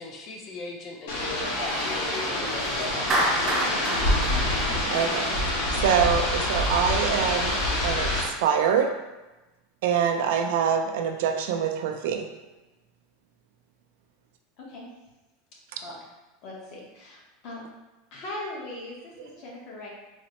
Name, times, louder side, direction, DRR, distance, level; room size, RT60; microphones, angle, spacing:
voice 1, 0.0-3.1, left 2 dB, 30° left, 1 dB, 0.5 m, -39 dB
sound 1, 1.1-8.2, left 1 dB, 80° left, 0.9 m, -26 dB
Clapping, 3.1-5.4, right 1 dB, 20° right, 0.6 m, -27 dB
voice 2, 4.9-5.3 5.7-7.6 7.8-9.0 9.8-12.3, right 7 dB, 70° right, 5 dB, 0.3 m, -25 dB
voice 3, 14.6-14.9 15.8-16.0 16.4-17.6 18.1-19.9, left 2 dB, 45° left, -3 dB, 0.9 m, -39 dB
3.9 x 2.0 x 2.9 m, 1.1 s
supercardioid pair, 160°, 0 cm